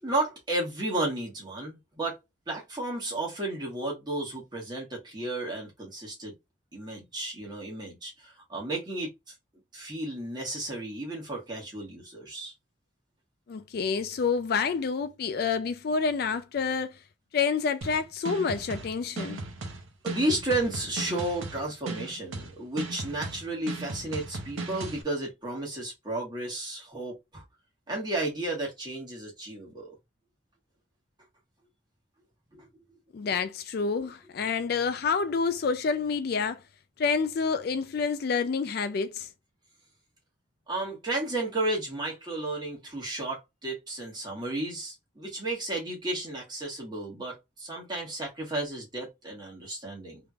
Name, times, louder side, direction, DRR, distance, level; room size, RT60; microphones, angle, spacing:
voice 1, 0.0-2.2 2.5-6.3 6.7-9.3 9.7-12.5 20.0-27.4 27.9-30.0 32.5-32.7 40.7-50.2, right 2 dB, 20° right, 1.4 m, -33 dB
voice 2, 13.5-17.0 17.3-19.4 33.1-36.6 37.0-39.3, left 5 dB, 50° left, 0.3 m, -28 dB
sound 1, 17.8-25.0, right 3 dB, 85° right, 0.7 m, -37 dB
3.5 x 3.0 x 2.4 m
head